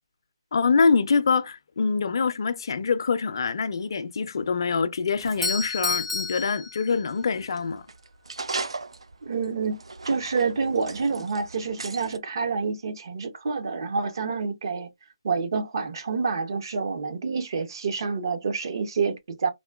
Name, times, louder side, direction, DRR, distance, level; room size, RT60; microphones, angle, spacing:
voice 1, 0.5-7.9, left 5 dB, 55° left, 0.4 m, -24 dB
Doorbell, 5.2-7.4, left 4 dB, ahead, 0.5 m, -31 dB
sound 1, 7.1-12.2, right 3 dB, 90° right, 0.3 m, -38 dB
voice 2, 9.2-9.8 10.0-14.9 15.2-19.5, right 5 dB, 50° right, 0.7 m, -28 dB
3.6 x 2.1 x 2.3 m
hypercardioid pair, 160°, 3 cm